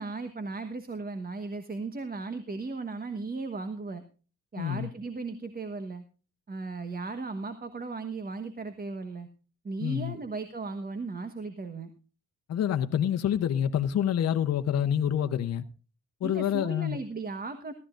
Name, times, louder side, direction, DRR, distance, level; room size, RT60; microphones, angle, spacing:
voice 1, 0.0-4.0 4.5-6.0 6.5-9.3 9.6-11.9 16.2-17.7, right 3 dB, 30° right, 1.3 m, -36 dB
voice 2, 4.6-4.9 9.8-10.2 12.5-15.6 16.2-17.0, left 9 dB, 55° left, 0.9 m, -27 dB
17.5 x 13.0 x 2.5 m
cardioid pair, 90°, 30 cm